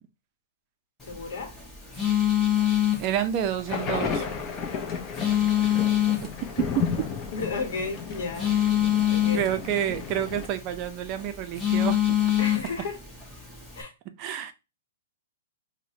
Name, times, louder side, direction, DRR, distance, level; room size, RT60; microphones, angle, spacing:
Telephone, 1.0-13.8, left 11 dB, 10° left, 1.0 m, -27 dB
voice 1, 1.1-1.5 7.3-8.5 9.1-9.5 12.4-13.0 13.7-13.9, left 4 dB, 65° left, 0.9 m, -33 dB
voice 2, 3.0-4.3 6.6-7.1 9.3-12.3 14.2-14.5, right 10 dB, 35° right, 0.4 m, -29 dB
sound 1, 3.7-10.5, left 6 dB, 25° left, 0.6 m, -33 dB
4.7 x 2.1 x 2.7 m
hypercardioid pair, 135°, 0 cm